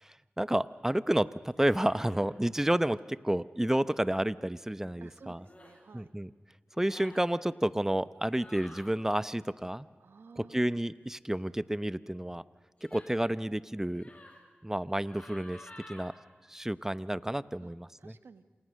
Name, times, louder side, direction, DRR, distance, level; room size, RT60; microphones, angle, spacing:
voice 1, 0.0-5.4 5.9-6.3 6.8-9.9 10.4-12.4 12.8-14.1 14.6-16.1 16.5-18.1, right 1 dB, 10° right, 15 dB, 0.9 m, -30 dB
sound 1, 1.5-2.2 3.8-4.1 5.4-5.8 6.7-7.2 8.3-8.9 12.8-13.2 14.0-14.4 15.0-16.1, left 1 dB, 35° left, 7.1 m, -52 dB
voice 2, 5.0-6.1 10.0-10.8 17.6-17.7 18.0-18.4, right 5 dB, 85° right, 10 dB, 1.4 m, -54 dB
29.0 x 27.5 x 6.5 m, 1.5 s
cardioid pair, 45°, 4 cm